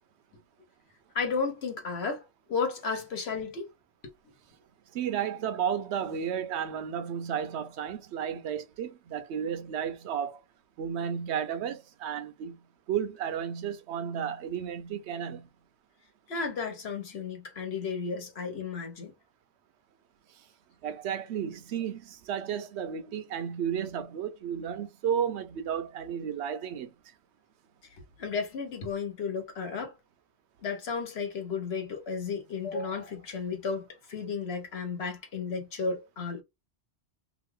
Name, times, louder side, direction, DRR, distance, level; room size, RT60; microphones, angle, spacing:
voice 1, 1.1-2.2 2.5-3.7 16.3-19.1 28.2-29.9 30.6-36.4, left 5 dB, 75° left, 1.2 m, -33 dB
voice 2, 4.9-10.4 10.8-12.6 12.9-15.5 20.8-26.9, right 8 dB, 90° right, 0.9 m, -33 dB
2.9 x 2.4 x 3.1 m
omnidirectional pair, 1.1 m